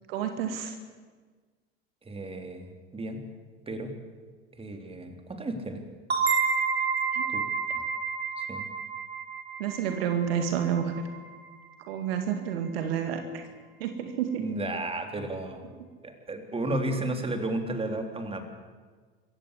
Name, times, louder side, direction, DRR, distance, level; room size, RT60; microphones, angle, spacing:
voice 1, 0.1-0.8 7.1-7.3 9.6-11.0 11.9-13.5 13.8-14.5, right 8 dB, 65° right, 7 dB, 2.2 m, -30 dB
voice 2, 2.0-3.2 3.7-3.9 4.6-5.8 7.3-7.4 7.7-7.8 8.4-8.7 14.4-15.7 16.0-18.4, right 1 dB, 20° right, 5 dB, 3.6 m, -33 dB
sound 1, 6.1-11.5, right 5 dB, 90° right, 3.7 m, -30 dB
26.0 x 15.5 x 8.4 m, 1.5 s
figure-of-eight pair, 70°, 31 cm